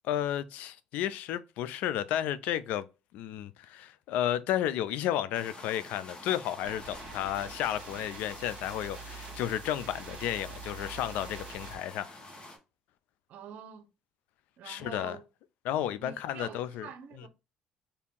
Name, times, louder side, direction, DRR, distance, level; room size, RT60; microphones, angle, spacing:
voice 1, 0.1-2.9 3.1-12.2 14.6-15.2 15.6-16.9, left 11 dB, 75° left, 0.3 m, -32 dB
sound 1, 5.3-12.6, left 1 dB, 40° left, 1.2 m, -47 dB
sound 2, 6.6-11.8, right 5 dB, 50° right, 1.2 m, -46 dB
voice 2, 13.3-13.9 14.6-15.2 16.0-17.3, right 8 dB, 65° right, 0.7 m, -46 dB
2.7 x 2.5 x 3.6 m
cardioid pair, 95°, 3 cm